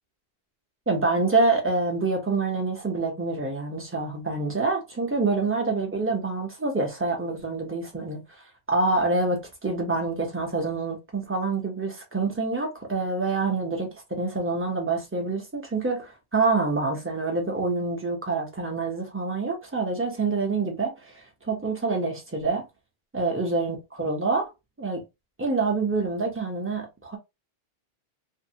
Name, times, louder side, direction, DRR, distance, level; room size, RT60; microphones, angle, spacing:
voice 1, 0.9-8.2 8.7-13.9 14.2-20.9 21.5-22.6 23.1-24.4 24.8-25.0 25.4-27.2, right 3 dB, 15° right, 0.6 m, -26 dB
2.6 x 2.0 x 2.7 m
omnidirectional pair, 1.1 m